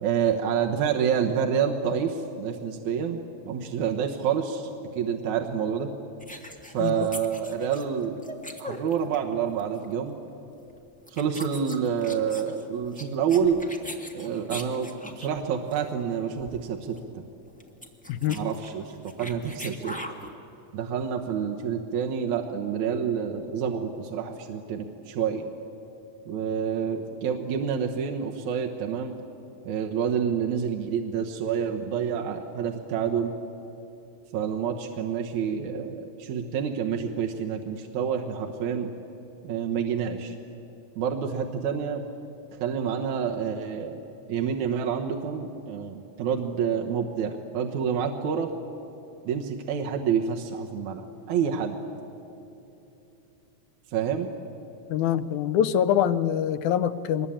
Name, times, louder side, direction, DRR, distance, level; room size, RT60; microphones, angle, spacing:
voice 1, 0.0-3.2 3.5-4.7 5.0-5.9 6.7-8.2 8.6-10.2 11.1-13.6 14.1-17.2 18.3-20.0 20.7-25.5 26.3-29.1 29.6-33.3 34.3-38.9 39.4-40.4 41.0-42.0 42.6-44.0 44.3-48.5 49.3-51.8 53.9-54.3, right 7 dB, 80° right, 2 dB, 2.5 m, -28 dB
sound 1, 6.2-9.3 9.6-9.9 10.6-10.8 11.1-15.4 15.7-15.9 16.1-16.2 16.4-16.7 16.9-17.0 17.5-20.3, equal, 5° left, 0.6 m, -41 dB
voice 2, 18.1-18.4 54.9-57.3, left 9 dB, 85° left, 13 dB, 2.2 m, -24 dB
23.5 x 21.0 x 8.7 m, 2.9 s
omnidirectional pair, 3.4 m